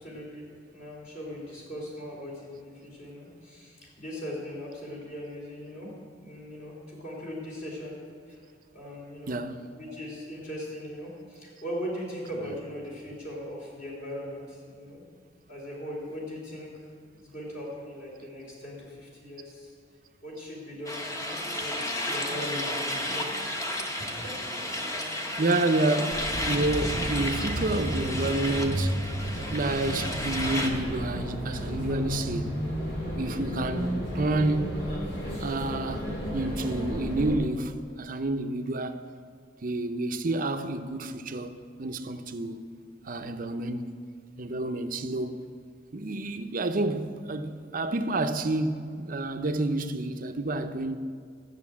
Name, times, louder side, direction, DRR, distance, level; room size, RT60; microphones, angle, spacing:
voice 1, 0.0-8.0 8.3-8.4 8.7-9.3 9.8-15.0 15.5-16.7 17.1-19.7 20.2-23.4 24.0-24.7 25.3-25.4, equal, 45° left, 3.6 m, -39 dB
voice 2, 9.3-9.7 25.4-29.0 29.5-32.6 33.2-34.8 35.4-39.0 39.6-42.7 43.0-44.0 44.4-45.4 45.9-51.0, right 2 dB, 50° right, 0.6 m, -29 dB
sound 1, 20.9-30.7, left 1 dB, 20° left, 1.1 m, -33 dB
sound 2, 26.1-37.4, equal, 70° left, 3.7 m, -32 dB
12.5 x 6.6 x 8.5 m
head